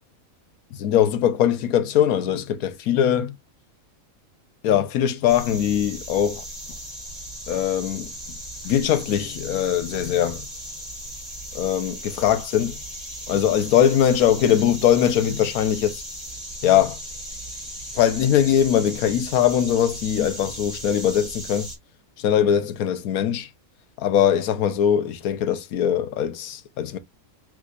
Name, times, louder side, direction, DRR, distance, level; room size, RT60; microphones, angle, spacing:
voice 1, 0.7-3.3 4.6-6.4 7.5-8.1 8.6-10.5 11.5-12.8 13.3-16.0 16.6-17.0 17.9-21.7 22.2-23.5 24.0-27.0, left 9 dB, 80° left, 1.2 m, -21 dB
sound 1, 5.3-21.8, right 1 dB, 25° right, 3.2 m, -37 dB
6.1 x 3.3 x 2.5 m
omnidirectional pair, 1.5 m